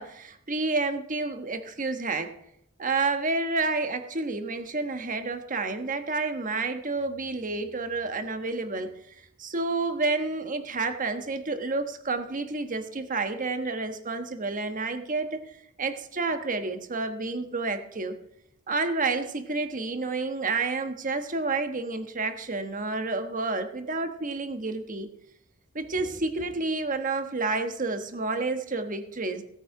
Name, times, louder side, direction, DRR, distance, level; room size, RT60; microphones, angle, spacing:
voice 1, 0.0-2.3 2.8-9.0 9.4-15.4 15.8-18.2 18.7-25.1 25.7-29.4, right 3 dB, 40° right, 8 dB, 1.3 m, -30 dB
17.5 x 8.2 x 4.8 m, 0.74 s
head